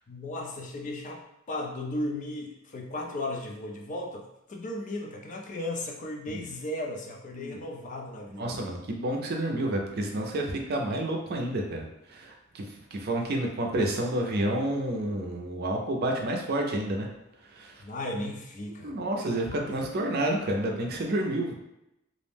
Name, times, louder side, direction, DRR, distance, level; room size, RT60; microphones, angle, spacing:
voice 1, 0.1-8.6 17.8-19.0 19.4-19.7, left 1 dB, 35° left, 1 dB, 0.4 m, -36 dB
voice 2, 8.4-12.7 12.9-17.1 17.5-17.8 18.8-21.6, right 1 dB, 50° right, 1 dB, 0.4 m, -29 dB
2.4 x 2.0 x 3.3 m, 0.85 s
head